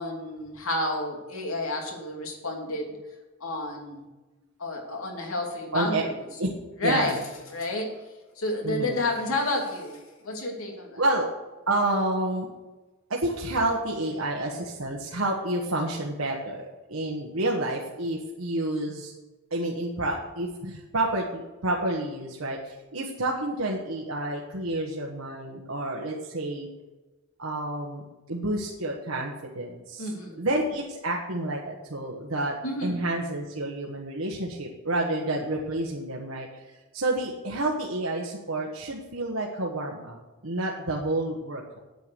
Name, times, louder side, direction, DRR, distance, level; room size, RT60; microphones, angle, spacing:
voice 1, 0.0-3.0 3.4-4.1 4.6-6.2 6.8-7.2 7.5-7.9 8.4-11.0 30.0-30.4 32.6-33.0, left 2 dB, 85° left, 1 dB, 2.6 m, -30 dB
voice 2, 5.7-6.0 6.4-6.5 6.8-7.1 8.6-9.0 11.0-11.3 11.7-12.5 13.1-19.1 19.5-26.7 27.4-30.1 30.4-32.6 32.8-41.8, right 1 dB, 80° right, -2 dB, 1.4 m, -29 dB
9.4 x 8.8 x 6.9 m, 1.2 s
head